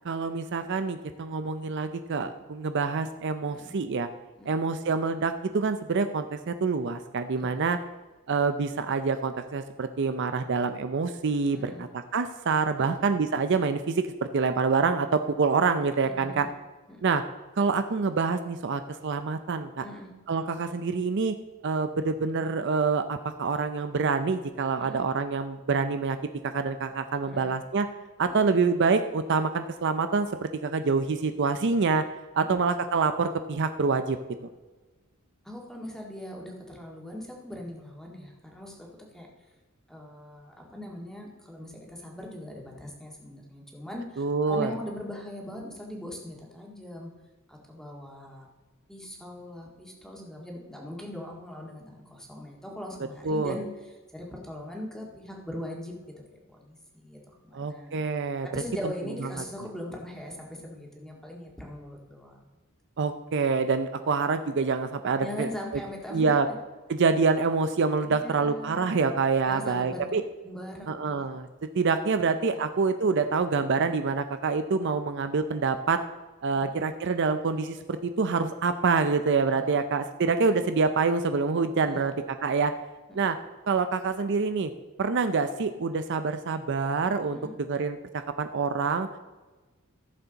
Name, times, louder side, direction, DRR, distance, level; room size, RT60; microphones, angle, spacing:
voice 1, 0.0-4.1 4.5-7.8 8.3-11.9 12.1-14.1 14.3-16.5 17.0-17.2 17.6-19.8 20.3-21.3 21.6-26.2 26.4-27.9 28.2-32.0 32.3-34.2 44.2-44.7 53.2-53.5 57.5-58.6 63.0-65.5 66.1-66.5 66.9-70.2 70.9-71.5 71.7-76.0 76.4-82.1 82.4-82.7 83.1-83.4 83.7-84.7 85.0-87.4 87.7-88.0 88.4-89.1, right 4 dB, 55° right, 9 dB, 0.5 m, -26 dB
voice 2, 16.0-16.5 16.9-17.1 19.8-20.1 24.8-25.0 27.2-27.5 28.2-28.4 32.3-32.6 35.4-38.9 39.1-39.3 39.9-47.1 47.5-48.5 48.9-55.9 56.3-58.0 58.4-62.5 65.2-66.6 68.1-68.9 69.5-70.0 70.4-71.2 72.2-72.6 76.5-76.8 79.5-79.8 81.8-82.1 83.1-83.2 87.1-87.5, left 1 dB, ahead, -1 dB, 1.9 m, -40 dB
14.5 x 7.0 x 4.0 m, 1.2 s
head